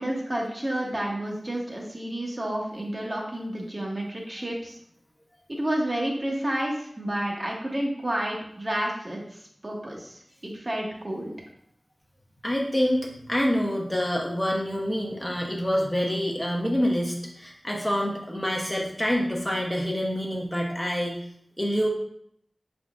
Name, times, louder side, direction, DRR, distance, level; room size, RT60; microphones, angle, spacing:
voice 1, 0.0-4.8 5.5-9.2 9.6-11.3, right 1 dB, 35° right, -2 dB, 1.0 m, -30 dB
voice 2, 12.4-21.2 21.6-21.9, equal, 15° left, -2 dB, 0.8 m, -26 dB
5.1 x 3.5 x 2.5 m, 0.69 s
wide cardioid pair, 55°, 0 cm